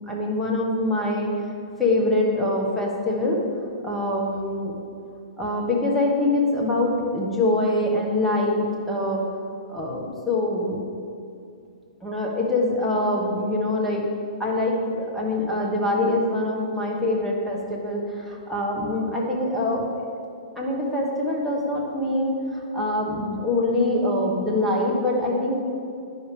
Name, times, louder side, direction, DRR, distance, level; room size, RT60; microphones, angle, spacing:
voice 1, 0.1-1.3 1.8-3.4 3.8-4.7 5.4-9.2 9.7-10.8 12.0-14.0 14.4-20.1 20.5-25.6, left 2 dB, 5° left, -5 dB, 1.5 m, -24 dB
11.5 x 5.0 x 3.4 m, 2.4 s
hypercardioid pair, 120°, 4 cm